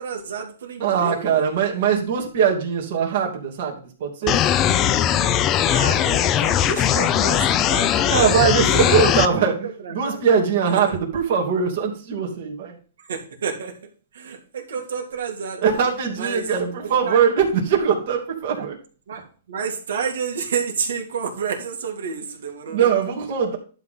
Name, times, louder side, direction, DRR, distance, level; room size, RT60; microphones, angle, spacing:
voice 1, 0.0-1.4 5.6-7.9 8.4-9.1 9.6-10.2 10.7-10.8 13.1-13.7 14.1-15.8 16.2-17.2 18.5-18.6 19.1-22.9, right 6 dB, 80° right, 2 dB, 2.3 m, -30 dB
voice 2, 0.8-4.4 8.1-12.7 15.6-18.8 22.7-23.6, right 7 dB, 50° right, 0 dB, 2.7 m, -21 dB
sound 1, 4.3-9.3, left 10 dB, 25° left, 0.6 m, -19 dB
11.5 x 3.9 x 5.6 m, 0.39 s
hypercardioid pair, 155°, 0 cm